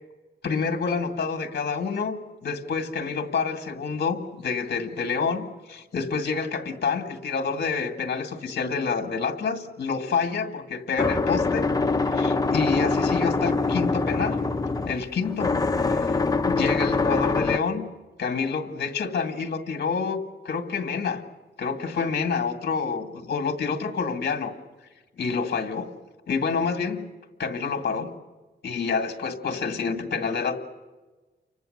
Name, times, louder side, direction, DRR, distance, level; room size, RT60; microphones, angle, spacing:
voice 1, 0.4-11.7 12.1-14.4 14.9-16.2 16.4-17.9 18.2-21.2 21.6-24.5 25.2-25.9 26.3-27.1 27.4-28.1 28.6-30.6, left 5 dB, 60° left, 7 dB, 2.1 m, -28 dB
sound 1, 11.0-17.6, left 3 dB, 20° left, 0.7 m, -24 dB
30.0 x 25.0 x 6.7 m, 1.2 s
wide cardioid pair, 175°, 19 cm